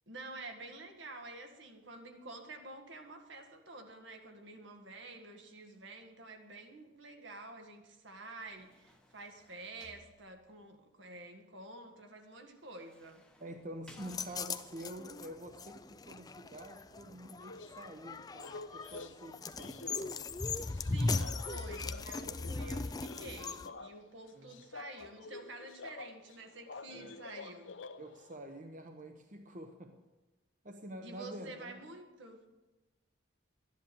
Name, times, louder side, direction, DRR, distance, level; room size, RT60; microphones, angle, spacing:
voice 1, 0.1-13.2 20.8-27.8 31.0-32.5, right 2 dB, 75° right, 4 dB, 1.7 m, -49 dB
sound 1, 8.3-10.7 12.6-14.9 17.7-19.6 20.6-22.6 23.9-25.1, left 1 dB, 5° left, 0.9 m, -65 dB
voice 2, 13.4-20.2 24.3-24.5 26.9-27.1 28.0-30.0 30.6-31.8, right 1 dB, 40° right, 5 dB, 0.8 m, -48 dB
sound 2, 14.0-23.7, left 3 dB, 20° left, 0.4 m, -39 dB
sound 3, 17.5-28.3, left 3 dB, 80° left, 0.8 m, -49 dB
13.0 x 10.5 x 6.9 m, 1.1 s
head